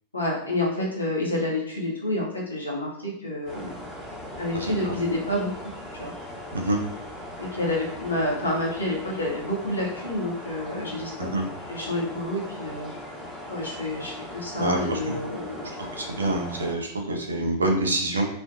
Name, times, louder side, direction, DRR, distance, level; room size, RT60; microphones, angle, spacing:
voice 1, 0.1-3.7 4.4-6.1 7.4-11.3 11.7-12.9 13.5-16.0, left 1 dB, 80° left, -3 dB, 0.7 m, -29 dB
sound 1, 3.5-16.7, left 1 dB, 25° left, 1.0 m, -39 dB
voice 2, 4.5-4.9 6.5-6.8 11.2-11.4 14.6-15.0 15.9-18.3, right 1 dB, 75° right, 1 dB, 0.5 m, -26 dB
2.5 x 2.1 x 2.6 m, 0.71 s
figure-of-eight pair, 90°, 0 cm